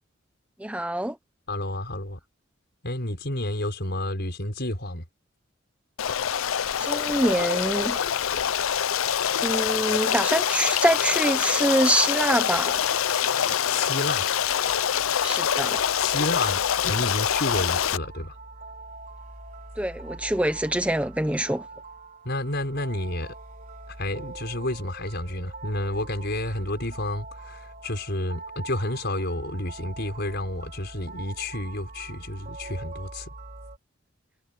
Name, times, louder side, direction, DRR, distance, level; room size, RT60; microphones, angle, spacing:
voice 1, 0.6-1.2 6.8-8.0 9.4-12.8 15.2-15.8 19.8-21.7, right 1 dB, 5° right, 0.9 m, -25 dB
voice 2, 1.5-2.2 2.8-5.0 13.7-14.3 16.0-18.3 22.2-23.3 24.0-33.3, left 1 dB, 55° left, 5.9 m, -30 dB
Stream, 6.0-18.0, left 9 dB, 90° left, 0.6 m, -25 dB
sound 1, 15.4-33.8, right 3 dB, 40° right, 4.5 m, -42 dB
head